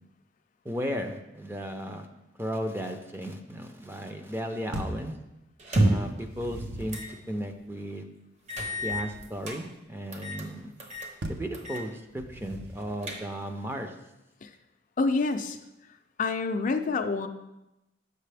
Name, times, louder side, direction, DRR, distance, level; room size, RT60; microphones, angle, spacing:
voice 1, 0.6-2.1 2.4-5.1 5.8-8.1 8.8-10.7 11.3-13.9, equal, 10° right, 5 dB, 0.5 m, -35 dB
sound 1, 4.7-5.1 6.0-7.1 11.2-11.6 12.2-12.9, right 1 dB, 60° right, 0.7 m, -38 dB
sound 2, 5.6-6.2 6.9-7.1 7.5-7.6 8.5-9.6 10.1-10.5 10.8-11.1 11.5-11.9 12.2-12.3 12.8-13.5, right 1 dB, 40° right, 1.0 m, -29 dB
voice 2, 15.0-15.6 16.2-17.3, left 3 dB, 45° left, 7 dB, 0.4 m, -27 dB
7.5 x 6.6 x 3.4 m, 0.93 s
head